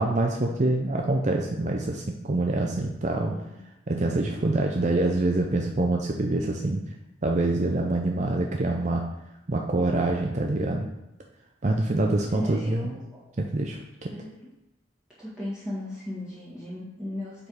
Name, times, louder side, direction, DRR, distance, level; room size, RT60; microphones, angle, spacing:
voice 1, 0.0-3.3 3.9-6.8 7.2-9.0 9.5-10.9 11.6-12.9 13.4-14.1, right 2 dB, 40° right, 1 dB, 0.5 m, -25 dB
voice 2, 3.3-3.6 12.3-13.2 14.1-14.3 15.2-17.5, left 1 dB, 5° right, -10 dB, 1.7 m, -36 dB
7.4 x 4.7 x 4.8 m, 0.94 s
head